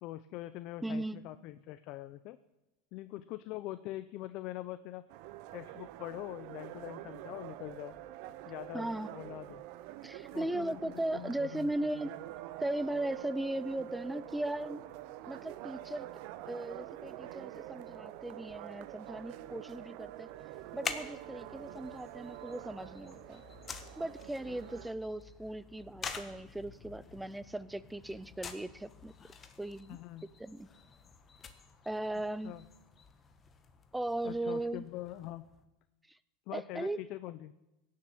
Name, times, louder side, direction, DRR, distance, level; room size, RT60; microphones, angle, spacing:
voice 1, 0.0-2.4 2.9-5.0 5.5-7.9 8.5-9.6 10.3-11.7 29.9-30.3 32.4-32.7 34.2-35.5 36.5-37.5, left 15 dB, 55° left, 13 dB, 0.6 m, -43 dB
voice 2, 0.8-1.2 8.7-9.1 10.0-12.1 12.6-14.9 15.3-16.1 16.5-20.3 20.7-23.4 24.0-29.1 29.6-30.0 30.4-30.7 31.9-32.6 33.9-34.8 36.5-37.0, right 1 dB, 5° right, 17 dB, 0.6 m, -37 dB
sound 1, 5.1-24.9, right 14 dB, 60° right, 0.8 m, -46 dB
sound 2, 20.5-35.7, left 5 dB, 25° left, 1.4 m, -48 dB
17.0 x 7.6 x 8.5 m, 0.94 s
supercardioid pair, 125°, 0 cm